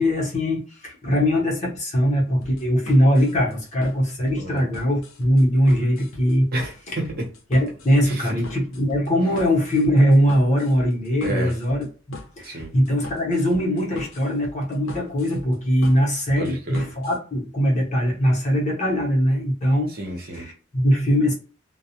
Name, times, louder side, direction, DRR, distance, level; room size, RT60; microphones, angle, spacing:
voice 1, 0.0-6.5 7.5-19.9 20.3-21.3, equal, 35° left, -2 dB, 0.8 m, -21 dB
sound 1, 2.4-17.2, left 2 dB, 85° left, 0.6 m, -41 dB
voice 2, 4.4-4.7 6.5-7.2 8.0-8.3 11.2-11.5 12.4-12.7 16.4-16.9 19.9-20.5, right 1 dB, 50° right, 0 dB, 0.8 m, -30 dB
2.2 x 2.0 x 2.8 m, 0.38 s
head